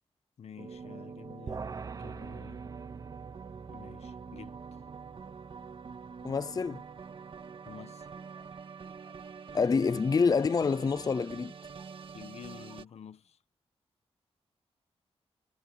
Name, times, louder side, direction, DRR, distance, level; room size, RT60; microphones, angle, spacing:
voice 1, 0.4-1.7 2.0-2.6 3.7-4.6 7.6-8.1 12.1-13.4, left 8 dB, 70° left, 1.4 m, -49 dB
sound 1, 0.6-12.8, right 5 dB, 50° right, 1.8 m, -46 dB
sound 2, 1.5-7.0, right 5 dB, 35° right, 0.8 m, -45 dB
voice 2, 6.2-6.8 9.5-11.5, left 5 dB, 35° left, 0.5 m, -27 dB
Laughter, 8.1-12.0 12.5-12.9, left 1 dB, 10° left, 6.5 m, -63 dB
wide cardioid pair, 125°, 11 cm